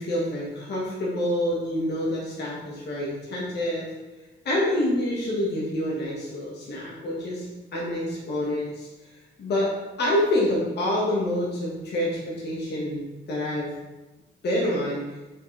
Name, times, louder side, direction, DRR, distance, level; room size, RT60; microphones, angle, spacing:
voice 1, 0.0-3.9 4.4-7.4 7.7-8.9 9.4-9.7 10.0-13.0 13.3-13.7 14.4-15.0, left 1 dB, 55° left, -5 dB, 1.7 m, -27 dB
6.3 x 5.2 x 3.4 m, 1.1 s
cardioid pair, 90°, 20 cm